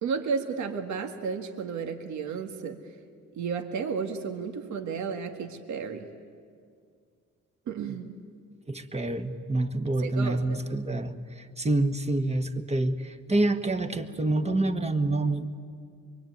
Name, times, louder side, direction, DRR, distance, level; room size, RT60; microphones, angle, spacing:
voice 1, 0.0-3.0 3.3-6.1 7.7-8.1 10.0-10.6, right 5 dB, 70° right, 5 dB, 2.0 m, -33 dB
voice 2, 8.7-15.6, right 2 dB, 20° right, 6 dB, 1.6 m, -27 dB
24.0 x 24.0 x 9.4 m, 2.2 s
cardioid pair, 90°, 30 cm